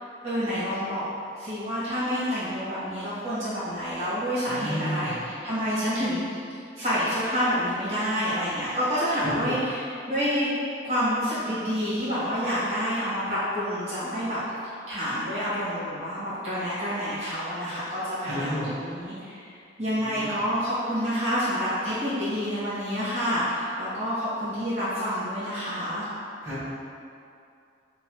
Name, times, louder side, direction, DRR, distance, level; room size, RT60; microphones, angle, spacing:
voice 1, 0.2-1.0 1.3-6.4 6.8-10.5 10.8-14.4 14.9-19.5 19.8-26.0, equal, 35° right, -14 dB, 1.4 m, -28 dB
voice 2, 4.4-5.2 9.4-9.6 18.2-18.7 19.9-20.3 26.4-26.6, equal, 15° right, -15 dB, 1.4 m, -32 dB
5.4 x 2.5 x 3.0 m, 2.5 s
head